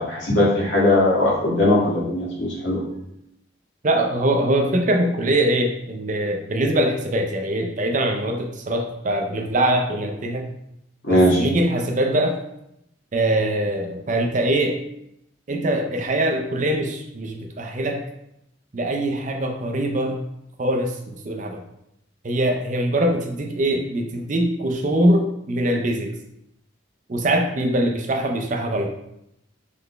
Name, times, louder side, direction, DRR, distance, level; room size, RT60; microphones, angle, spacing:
voice 1, 0.0-2.8 11.0-11.4, left 1 dB, 65° left, -6 dB, 1.6 m, -19 dB
voice 2, 3.8-10.5 11.1-12.4 13.1-14.8 15.5-18.0 18.7-20.2 20.6-21.6 22.2-26.1 27.1-28.9, right 1 dB, 40° right, 2 dB, 0.5 m, -22 dB
3.9 x 3.3 x 3.3 m, 0.80 s
head